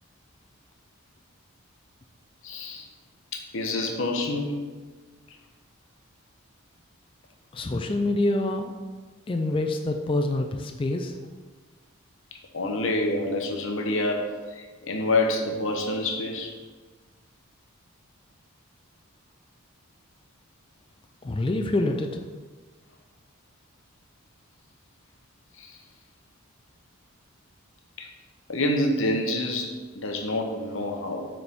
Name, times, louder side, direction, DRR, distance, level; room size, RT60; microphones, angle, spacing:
voice 1, 2.4-2.9 3.3-4.6 12.5-16.5 25.6-25.8 28.0-28.1 28.5-31.3, left 2 dB, 65° left, 3 dB, 0.8 m, -27 dB
voice 2, 7.5-8.7 9.3-11.1 21.2-22.1, left 2 dB, 25° left, 4 dB, 0.3 m, -26 dB
6.6 x 4.3 x 3.5 m, 1.3 s
head